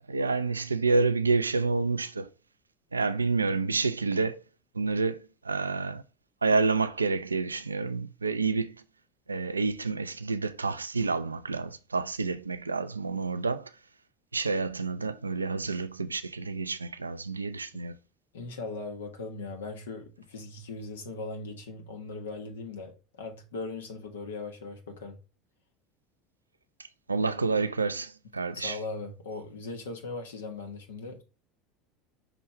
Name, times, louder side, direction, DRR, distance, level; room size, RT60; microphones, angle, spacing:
voice 1, 0.1-2.3 2.9-4.4 4.8-6.0 6.4-8.7 9.3-13.7 14.3-18.0 27.1-28.8, right 4 dB, 85° right, 0.4 m, -28 dB
voice 2, 18.3-25.2 28.5-31.2, left 3 dB, 70° left, 1.4 m, -39 dB
5.9 x 3.1 x 5.5 m
figure-of-eight pair, 75°, 0 cm